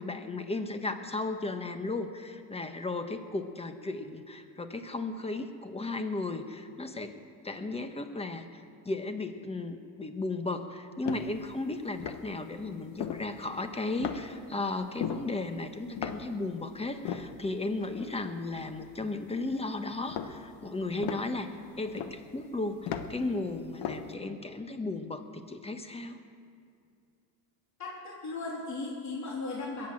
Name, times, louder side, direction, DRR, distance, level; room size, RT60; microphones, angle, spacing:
voice 1, 0.0-7.2 7.4-26.2, left 2 dB, 15° left, 7 dB, 1.4 m, -35 dB
sound 1, 11.0-11.6 11.9-12.4 12.9-13.7 14.0-14.5 14.8-16.6 16.9-19.5 20.0-23.3 23.6-24.1, left 8 dB, 60° left, 1.3 m, -37 dB
voice 2, 27.8-29.9, left 3 dB, 35° left, -4 dB, 3.3 m, -37 dB
21.0 x 9.0 x 7.5 m, 2.4 s
supercardioid pair, 90°, 46 cm